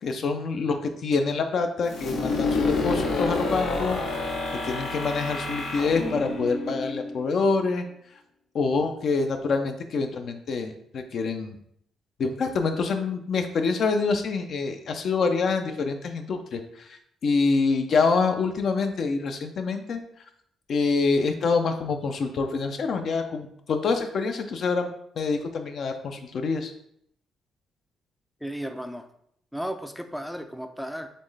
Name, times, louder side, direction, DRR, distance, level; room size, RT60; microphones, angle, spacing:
voice 1, 0.0-4.0 4.6-7.8 8.5-11.5 12.2-20.0 20.7-26.7, left 4 dB, 60° left, 6 dB, 0.5 m, -26 dB
sound 1, 1.9-7.6, left 3 dB, 80° left, 0.9 m, -28 dB
voice 2, 28.4-29.1 29.5-31.1, equal, ahead, 6 dB, 0.4 m, -34 dB
4.2 x 3.1 x 3.3 m, 0.70 s
cardioid pair, 90°, 0 cm